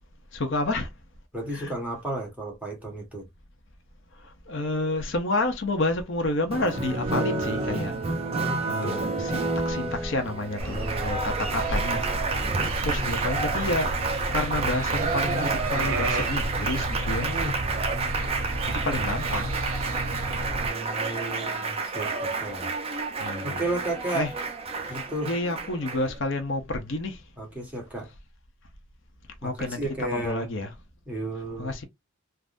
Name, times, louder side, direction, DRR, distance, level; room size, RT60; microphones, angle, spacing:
voice 1, 0.3-0.9 1.5-1.7 4.5-8.0 8.6-12.0 12.3-13.9 14.3-17.3 18.7-19.5 23.2-23.6 24.1-24.3 24.9-27.2 29.4-30.7 31.6-31.8, left 2 dB, 60° left, 0.7 m, -29 dB
voice 2, 1.3-3.3 8.3-9.1 10.7-11.1 13.0-13.1 17.2-17.5 20.6-22.7 23.4-24.3 24.9-25.3 27.4-28.1 29.4-30.5 31.1-31.7, right 1 dB, 5° right, 1.1 m, -33 dB
Applause, 6.5-26.2, right 4 dB, 30° right, 0.5 m, -30 dB
sound 1, 10.6-20.7, right 1 dB, 80° right, 0.7 m, -31 dB
3.5 x 2.0 x 2.5 m
head